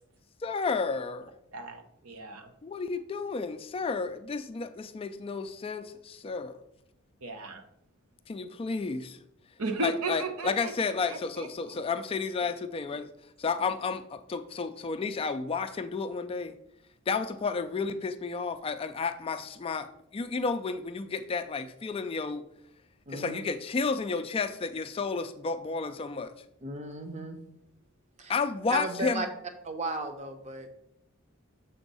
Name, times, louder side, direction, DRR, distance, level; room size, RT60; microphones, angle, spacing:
voice 1, 0.4-1.3 2.6-6.6 8.3-9.2 9.8-13.1 13.4-16.5 17.1-22.4 23.1-26.3 28.3-29.3, left 4 dB, 25° left, 9 dB, 0.3 m, -32 dB
voice 2, 1.5-2.5 7.2-7.6 9.6-10.7 11.1-11.7, right 3 dB, 85° right, 6 dB, 0.8 m, -35 dB
voice 3, 23.1-23.4 26.6-27.4 28.2-28.3 28.7-29.3 29.6-30.7, right 2 dB, 30° right, 6 dB, 0.7 m, -35 dB
6.9 x 3.6 x 5.4 m, 0.79 s
head